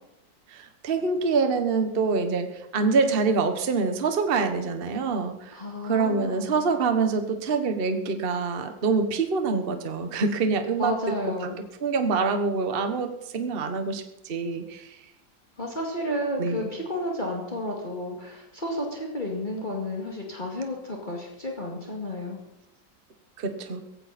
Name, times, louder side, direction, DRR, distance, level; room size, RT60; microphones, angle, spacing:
voice 1, 0.5-10.9 11.8-15.0 16.4-16.6 23.4-23.8, right 4 dB, 35° right, 7 dB, 1.3 m, -26 dB
voice 2, 5.5-6.7 10.8-11.6 15.6-22.4, left 1 dB, 25° left, -1 dB, 2.4 m, -32 dB
17.0 x 15.5 x 4.3 m, 0.83 s
omnidirectional pair, 2.0 m